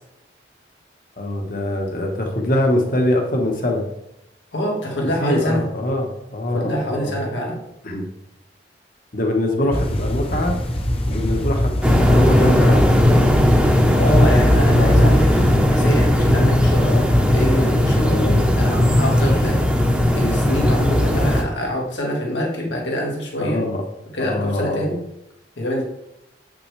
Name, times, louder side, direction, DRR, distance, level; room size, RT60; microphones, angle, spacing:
voice 1, 1.2-3.8 5.2-7.2 7.8-8.1 9.1-10.6 11.1-12.9 14.8-15.2 16.8-17.1 18.0-18.5 23.4-23.8 24.2-24.9, left 1 dB, 50° left, 2 dB, 1.3 m, -23 dB
voice 2, 4.5-5.7 6.5-7.6 9.6-9.8 14.0-16.9 17.3-18.2 18.5-19.6 20.0-23.6 24.1-25.0 25.6-25.8, equal, 80° left, -1 dB, 1.9 m, -25 dB
sound 1, 9.7-15.6, left 1 dB, 30° left, 0.9 m, -22 dB
sound 2, 11.8-21.4, left 1 dB, 5° right, 0.9 m, -17 dB
7.8 x 5.9 x 3.3 m, 0.84 s
head